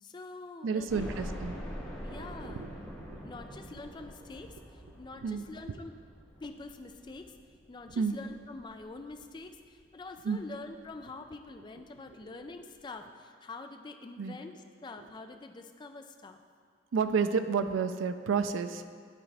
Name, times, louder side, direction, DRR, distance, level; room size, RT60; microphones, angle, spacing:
voice 1, 0.0-1.1 2.0-2.7 3.2-6.0 6.4-7.4 7.7-16.4, left 3 dB, 25° left, 6 dB, 0.3 m, -46 dB
voice 2, 0.6-1.5 2.4-2.7 3.0-3.2 5.2-5.8 8.0-8.2 10.2-10.4 14.2-14.3 16.9-18.9, right 5 dB, 85° right, 9 dB, 0.4 m, -30 dB
sound 1, 0.9-9.8 10.3-10.4 10.7-10.8 12.0-12.1 12.4-12.5, equal, 10° left, 1.2 m, -45 dB
11.0 x 3.9 x 3.3 m, 2.1 s
head